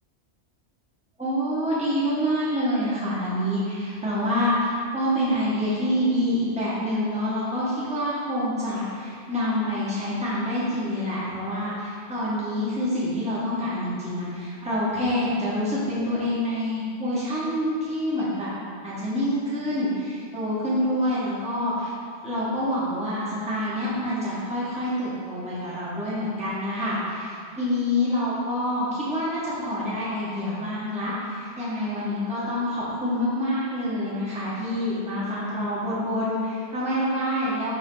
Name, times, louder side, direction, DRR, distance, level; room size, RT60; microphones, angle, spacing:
voice 1, 1.2-18.5 18.8-21.9 22.2-37.8, left 1 dB, 5° right, -9 dB, 1.3 m, -27 dB
6.0 x 3.7 x 5.5 m, 2.2 s
omnidirectional pair, 1.2 m